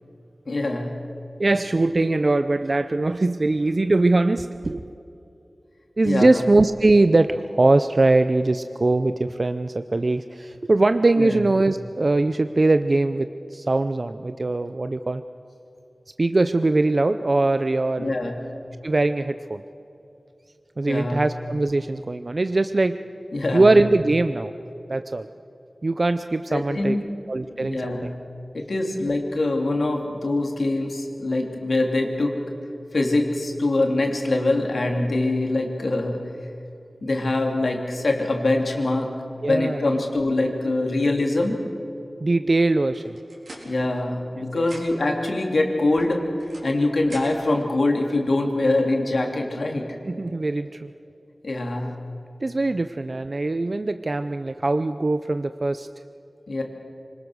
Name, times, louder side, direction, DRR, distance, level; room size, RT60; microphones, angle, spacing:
voice 1, 0.5-0.9 6.0-6.4 11.2-11.4 18.0-18.4 20.8-21.2 23.3-23.7 26.5-27.0 27.6-28.1 28.5-32.4 32.9-36.2 37.0-39.1 39.4-41.5 43.6-46.2 46.6-50.0 51.4-51.9 56.5-56.6, left 2 dB, 75° left, 2 dB, 2.9 m, -23 dB
voice 2, 1.4-4.8 6.0-15.2 16.2-18.2 18.8-19.6 20.8-23.0 23.5-24.5 24.9-25.3 25.8-27.0 27.3-28.1 39.4-39.9 42.2-43.2 44.5-44.7 50.1-50.9 52.4-55.9, right 2 dB, 55° right, 10 dB, 0.6 m, -21 dB
sound 1, 42.9-44.3 44.6-45.2 45.9-47.6, right 1 dB, 85° right, 4.8 m, -44 dB
25.5 x 19.5 x 6.4 m, 2.7 s
cardioid pair, 45°, 0 cm